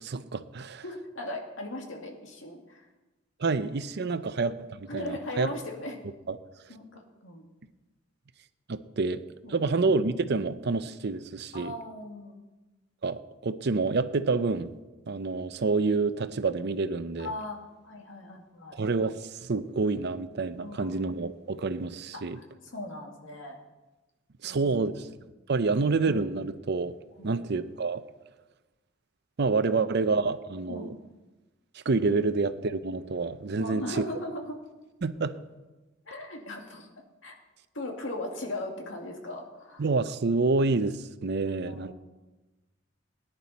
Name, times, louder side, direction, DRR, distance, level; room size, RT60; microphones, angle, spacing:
voice 1, 0.0-0.8 3.4-5.5 6.3-6.4 8.7-9.2 9.5-11.7 13.0-14.7 15.1-17.3 18.7-22.4 24.4-25.1 25.5-26.9 27.2-28.0 29.4-30.9 31.7-34.0 35.0-35.4 39.8-41.9, right 3 dB, 60° right, 12 dB, 0.6 m, -28 dB
voice 2, 0.8-2.8 4.1-4.2 4.9-6.0 6.7-7.4 9.4-9.7 11.5-12.4 17.2-17.6 17.8-18.8 20.6-20.9 22.1-22.4 22.7-23.6 24.4-25.0 25.6-26.0 27.2-27.4 30.7-30.9 33.6-34.6 36.1-36.9 37.2-37.3 37.7-39.8 41.4-41.9, left 1 dB, 75° left, 1 dB, 2.2 m, -38 dB
18.5 x 10.5 x 4.1 m, 1.1 s
head